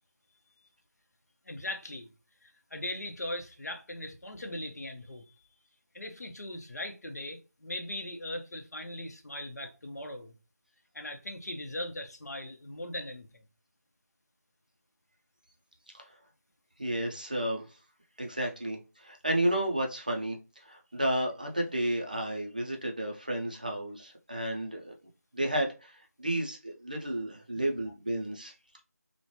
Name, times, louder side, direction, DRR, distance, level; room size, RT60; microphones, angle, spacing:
voice 1, 1.5-2.1 2.4-5.3 5.9-10.3 10.9-13.5, left 1 dB, 70° left, 0.8 m, -39 dB
voice 2, 16.8-17.7 18.2-20.4 20.7-24.9 25.3-25.9 26.2-28.5, right 1 dB, 30° right, 0.4 m, -32 dB
3.1 x 2.1 x 2.8 m
figure-of-eight pair, 175°, 9 cm